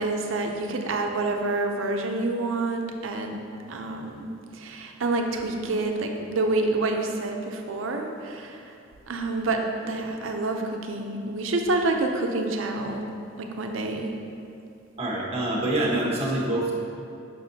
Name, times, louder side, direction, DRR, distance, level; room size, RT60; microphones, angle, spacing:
voice 1, 0.0-3.4 3.7-8.7 9.1-13.1 13.4-14.1, right 2 dB, 70° right, 3 dB, 0.6 m, -28 dB
voice 2, 15.0-16.7, right 1 dB, 30° right, -4 dB, 1.1 m, -25 dB
6.2 x 6.0 x 2.7 m, 2.6 s
head